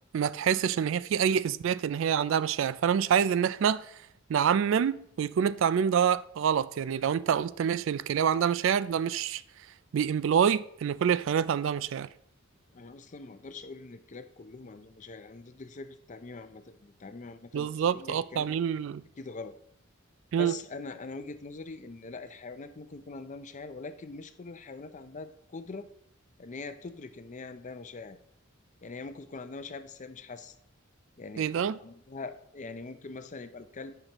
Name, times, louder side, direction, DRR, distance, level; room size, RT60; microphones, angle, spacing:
voice 1, 0.1-3.9 4.3-9.4 9.9-12.1 17.5-19.0 20.3-20.5 31.4-31.8, right 8 dB, 65° right, 0.3 m, -26 dB
voice 2, 12.7-18.5 19.2-19.6 20.3-25.9 26.4-28.2 28.8-30.6 31.2-33.9, left 3 dB, 35° left, 0.5 m, -43 dB
15.5 x 5.8 x 3.0 m
head